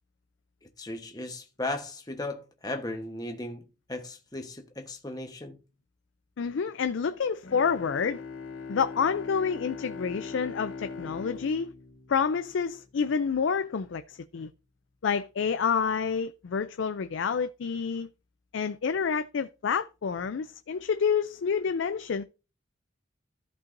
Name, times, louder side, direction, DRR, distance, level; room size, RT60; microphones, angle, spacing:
voice 1, 0.6-3.6 3.9-5.6, left 2 dB, 20° left, 1.1 m, -36 dB
voice 2, 6.4-8.2 8.7-11.7 12.1-14.5 15.0-18.1 18.5-22.2, left 6 dB, 70° left, 0.4 m, -28 dB
Bowed string instrument, 7.4-13.0, left 5 dB, 85° left, 1.0 m, -41 dB
14.5 x 5.5 x 2.6 m
head